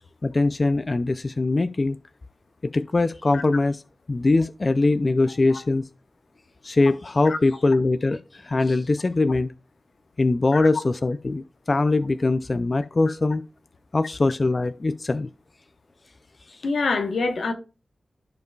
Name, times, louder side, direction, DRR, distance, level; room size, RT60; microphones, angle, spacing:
voice 1, 0.2-2.0 2.6-3.8 4.1-5.9 6.6-9.5 10.2-13.4 13.9-15.3 16.5-16.6, left 3 dB, 35° left, 0.3 m, -22 dB
voice 2, 16.6-17.5, left 3 dB, 80° left, 1.0 m, -25 dB
13.5 x 4.7 x 2.3 m
wide cardioid pair, 125°, 0 cm